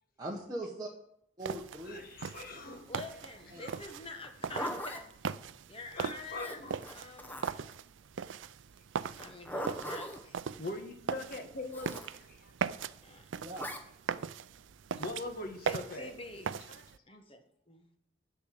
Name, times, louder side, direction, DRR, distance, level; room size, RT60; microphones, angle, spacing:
voice 1, 0.2-0.9 1.4-2.0 3.5-3.6 13.4-13.7, right 1 dB, 20° right, -3 dB, 1.3 m, -40 dB
sound 1, 1.4-17.0, right 6 dB, 70° right, 0.4 m, -40 dB
voice 2, 1.8-2.9 3.6-3.9 5.9-6.8 10.6-12.5 13.6-13.7 14.9-16.1 16.7-16.8 17.1-17.2, left 2 dB, 50° left, 6 dB, 1.4 m, -42 dB
voice 3, 2.9-5.1 5.7-7.9 9.1-10.4 13.0-13.3 15.6-16.8 17.0-17.9, left 2 dB, 30° left, 6 dB, 1.2 m, -47 dB
Zipper (clothing), 4.2-5.0 6.3-7.7 9.2-10.2 11.7-12.1 13.6-13.8, equal, 10° left, 0.9 m, -40 dB
9.0 x 7.1 x 7.5 m, 0.71 s
head